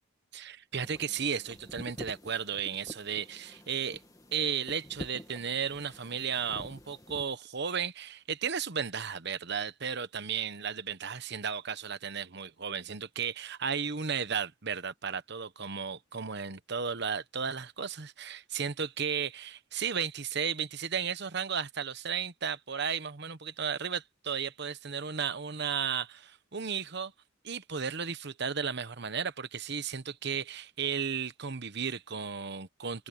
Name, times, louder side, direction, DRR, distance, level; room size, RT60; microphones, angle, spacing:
voice 1, 0.3-4.0 4.3-27.1 27.4-33.1, right 6 dB, 55° right, 1.0 m, -34 dB
sound 1, 0.7-7.2, left 1 dB, 15° left, 2.0 m, -48 dB
open air
head